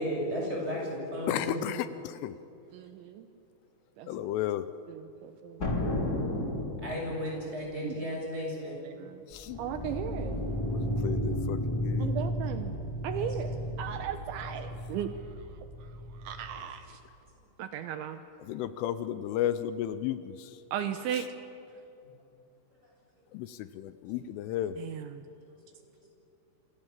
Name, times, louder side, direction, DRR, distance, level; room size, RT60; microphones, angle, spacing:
voice 1, 0.0-1.7 6.8-8.8 13.2-13.9 22.0-22.1 23.1-23.2 25.5-25.6, equal, 10° right, -1 dB, 7.8 m, -35 dB
voice 2, 1.3-2.4 4.1-4.7 9.3-9.6 10.7-12.1 18.4-20.6 21.1-21.3 23.3-24.8, left 12 dB, 80° left, 12 dB, 3.2 m, -33 dB
voice 3, 2.7-3.3 4.0-4.3 4.9-5.9 7.8-7.9 8.9-9.2 9.6-10.4 12.0-12.7 13.0-13.5 13.8-15.1 16.2-17.0 17.6-18.2 20.7-21.3 24.8-25.2, right 10 dB, 75° right, 8 dB, 3.2 m, -36 dB
sound 1, 5.6-7.3, left 2 dB, 25° left, 2.3 m, -31 dB
sound 2, 9.3-16.6, equal, 5° left, 3.1 m, -34 dB
29.0 x 27.0 x 7.4 m, 2.7 s
omnidirectional pair, 5.8 m